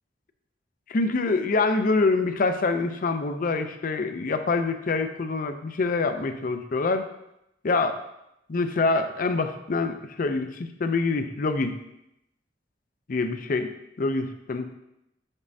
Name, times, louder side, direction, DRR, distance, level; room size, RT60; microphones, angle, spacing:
voice 1, 0.9-7.1 7.6-8.0 8.5-11.8 13.1-13.7 14.0-14.7, left 3 dB, 50° left, 8 dB, 0.5 m, -25 dB
7.1 x 5.3 x 2.7 m, 0.84 s
head